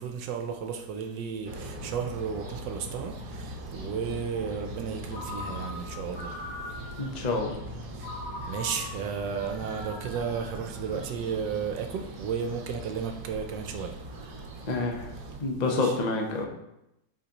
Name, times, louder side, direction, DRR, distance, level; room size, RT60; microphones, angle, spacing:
voice 1, 0.0-6.3 8.0-8.1 8.5-13.9 15.6-16.0, right 6 dB, 80° right, 1.3 m, -33 dB
sound 1, 1.5-15.4, right 1 dB, 55° right, 1.2 m, -41 dB
Ringtone, 5.1-7.2 8.0-11.4, left 2 dB, 85° left, 1.9 m, -42 dB
voice 2, 7.0-7.6 14.7-15.1 15.4-16.5, left 3 dB, 40° left, 0.6 m, -28 dB
8.0 x 4.9 x 2.9 m
omnidirectional pair, 1.9 m